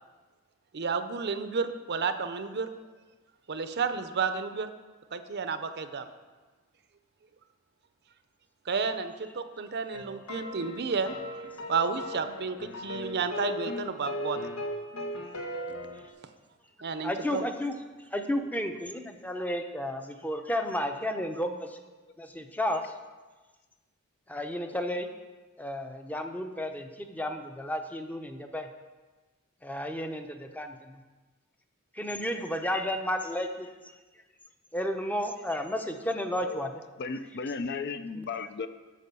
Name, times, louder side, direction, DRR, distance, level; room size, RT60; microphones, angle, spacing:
voice 1, 0.7-2.7 3.5-4.7 5.1-6.1 8.7-11.2 11.7-14.4 16.8-17.4, right 5 dB, 50° right, 10 dB, 0.6 m, -31 dB
sound 1, 9.9-16.1, equal, 85° left, 1.2 m, -37 dB
voice 2, 17.0-17.7 18.1-21.8 22.2-22.9 24.3-25.1 25.6-28.7 29.6-31.0 31.9-33.7 34.7-36.8 38.2-38.3, left 1 dB, 5° left, 6 dB, 0.6 m, -32 dB
voice 3, 36.4-36.7 37.0-38.7, left 4 dB, 50° left, 11 dB, 0.4 m, -35 dB
8.4 x 5.9 x 6.8 m, 1.3 s
head